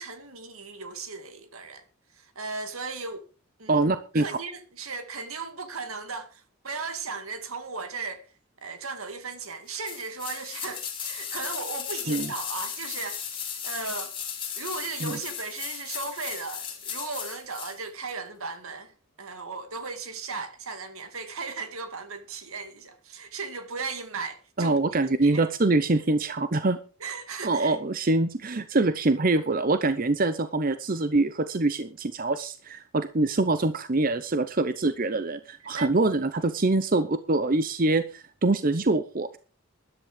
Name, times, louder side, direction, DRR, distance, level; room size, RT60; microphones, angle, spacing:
voice 1, 0.0-1.8 2.1-3.2 3.6-3.8 4.1-8.3 8.6-14.1 14.6-25.4 27.0-27.8 35.8-35.9, right 4 dB, 80° right, 2.1 m, -36 dB
voice 2, 3.7-4.3 12.1-12.3 15.0-15.2 24.6-26.8 27.4-39.4, right 2 dB, 40° right, 0.7 m, -24 dB
sound 1, 9.8-17.8 18.1-18.2, left 8 dB, 25° left, 2.8 m, -36 dB
13.0 x 11.0 x 5.1 m
head